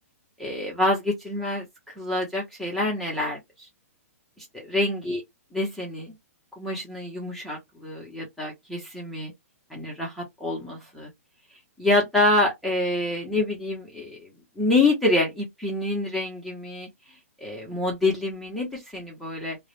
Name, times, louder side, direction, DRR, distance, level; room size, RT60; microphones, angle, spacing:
voice 1, 0.4-3.7 4.4-5.2 5.5-6.1 6.6-9.3 9.7-11.1 11.8-14.3 14.6-16.9 17.4-19.6, left 2 dB, ahead, 0.7 m, -26 dB
2.3 x 2.0 x 2.8 m
hypercardioid pair, 140°, 8 cm